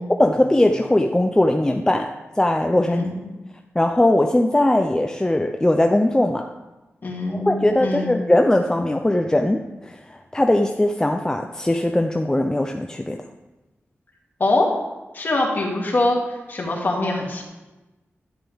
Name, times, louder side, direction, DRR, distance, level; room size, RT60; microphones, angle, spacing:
voice 1, 0.0-3.1 3.8-6.5 7.3-13.2, left 1 dB, 15° left, 4 dB, 0.5 m, -20 dB
voice 2, 2.9-3.3 7.0-8.2 14.4-14.7 15.1-17.4, left 2 dB, 45° left, -1 dB, 2.3 m, -23 dB
11.0 x 10.0 x 3.5 m, 1.1 s
wide cardioid pair, 125°, 5 cm